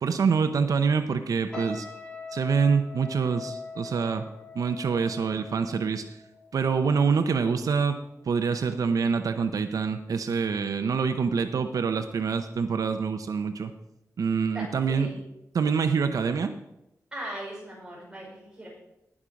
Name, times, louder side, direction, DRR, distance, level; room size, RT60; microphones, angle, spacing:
voice 1, 0.0-1.9 2.3-4.3 4.5-6.2 6.5-8.0 8.2-13.7 14.2-15.2 15.5-16.5, right 5 dB, 90° right, 8 dB, 0.7 m, -26 dB
sound 1, 1.5-6.8 7.1-7.4, left 4 dB, 15° left, 3.0 m, -41 dB
voice 2, 14.5-15.2 17.1-18.7, right 1 dB, 15° right, -6 dB, 5.4 m, -39 dB
18.5 x 6.2 x 5.2 m, 0.88 s
wide cardioid pair, 170°, 6 cm